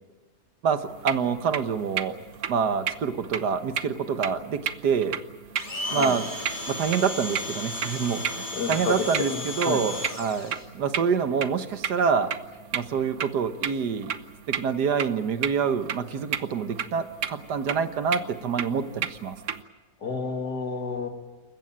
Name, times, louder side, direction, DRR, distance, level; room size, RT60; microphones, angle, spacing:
voice 1, 0.6-2.2 2.5-5.2 5.9-6.3 6.7-12.3 12.7-14.1 14.5-19.4, right 6 dB, 85° right, 10 dB, 1.8 m, -26 dB
sound 1, 0.8-19.6, right 8 dB, 55° right, 1.2 m, -34 dB
Domestic sounds home sounds, 5.6-10.6, left 2 dB, 30° left, 3.0 m, -34 dB
voice 2, 5.8-6.2 8.5-9.8 20.0-21.1, left 4 dB, 85° left, 4 dB, 2.8 m, -30 dB
28.5 x 15.5 x 9.0 m, 1.2 s
omnidirectional pair, 1.7 m